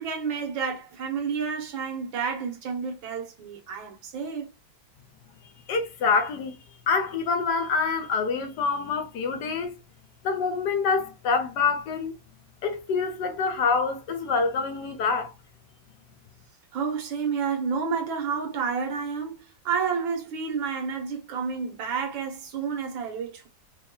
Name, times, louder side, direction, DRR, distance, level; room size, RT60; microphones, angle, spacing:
voice 1, 0.0-4.5 16.7-23.5, right 6 dB, 85° right, 1.8 m, -30 dB
voice 2, 5.7-6.6 6.9-9.8 10.2-12.1 12.6-15.3, left 5 dB, 70° left, 1.2 m, -26 dB
4.6 x 2.2 x 2.9 m
omnidirectional pair, 2.1 m